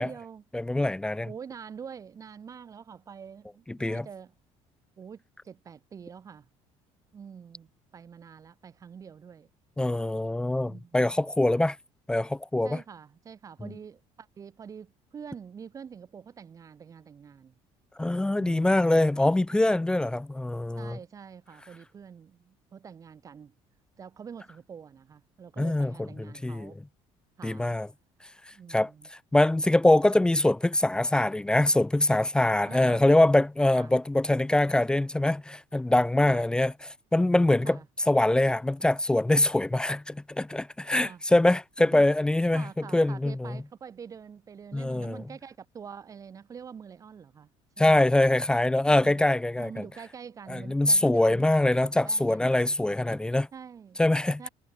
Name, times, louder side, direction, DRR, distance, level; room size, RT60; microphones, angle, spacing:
voice 1, 0.0-0.4 1.2-4.3 5.0-6.5 7.1-9.5 10.6-11.7 12.6-17.5 18.4-18.8 19.5-20.1 20.7-23.5 24.0-26.8 27.4-27.7 28.5-29.1 32.6-33.1 33.8-33.9 36.3-36.4 37.6-37.8 40.9-41.2 41.8-42.0 42.5-47.5 47.8-48.0 49.6-52.6 53.5-54.0 54.4-54.5, right 7 dB, 30° right, 2.1 m, -46 dB
voice 2, 0.5-1.3 3.7-4.1 9.8-11.8 12.1-12.8 13.6-13.7 18.0-21.0 25.6-26.1 26.4-26.7 27.4-27.9 28.7-28.9 29.3-37.8 38.1-43.5 44.7-45.2 47.8-49.8 50.5-53.5 54.0-54.5, left 1 dB, 5° left, 0.9 m, -24 dB
cardioid pair, 160°, 12 cm